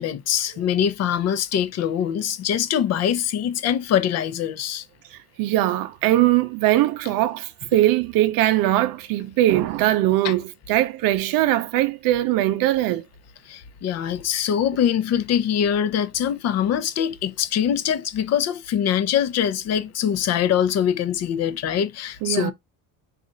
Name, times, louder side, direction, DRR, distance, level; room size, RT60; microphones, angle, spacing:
voice 1, 0.0-4.9 10.2-10.4 13.5-22.5, left 9 dB, 40° left, 0.6 m, -23 dB
voice 2, 5.4-10.4 10.7-13.0 22.2-22.5, right 14 dB, 55° right, 0.7 m, -21 dB
4.1 x 2.5 x 3.8 m
cardioid pair, 130°, 42 cm